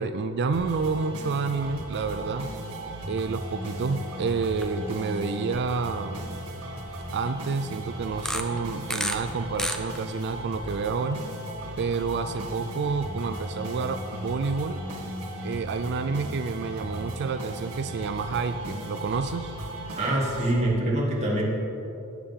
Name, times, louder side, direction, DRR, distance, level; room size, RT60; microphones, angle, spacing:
voice 1, 0.0-2.5 3.1-6.3 7.1-11.2 11.8-14.8 15.4-19.6, right 4 dB, 50° right, 9 dB, 0.4 m, -29 dB
sound 1, 0.5-20.5, right 1 dB, 75° right, 1.9 m, -37 dB
sound 2, 4.4-4.7 5.1-5.2 5.9-6.0 8.1-9.2 9.5-10.2, equal, ahead, 0.6 m, -30 dB
voice 2, 20.0-21.4, right 1 dB, 30° right, -5 dB, 2.6 m, -25 dB
18.0 x 8.8 x 3.7 m, 2.9 s
head